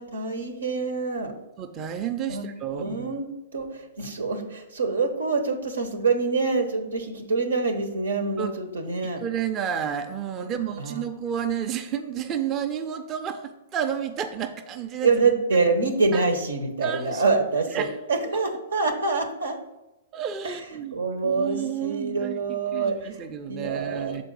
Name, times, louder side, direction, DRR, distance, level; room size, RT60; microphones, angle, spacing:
voice 1, 0.0-1.3 2.3-3.3 3.5-9.2 10.4-10.5 10.8-11.0 15.0-19.6 20.4-20.6 20.9-23.2 23.5-24.2, right 4 dB, 90° right, 7 dB, 0.9 m, -26 dB
voice 2, 1.6-3.1 8.4-8.5 9.2-15.1 16.8-17.2 17.7-17.9 20.1-20.9 21.2-24.2, right 8 dB, 30° right, 5 dB, 0.5 m, -31 dB
6.8 x 4.1 x 5.4 m, 1.0 s
hypercardioid pair, 130°, 0 cm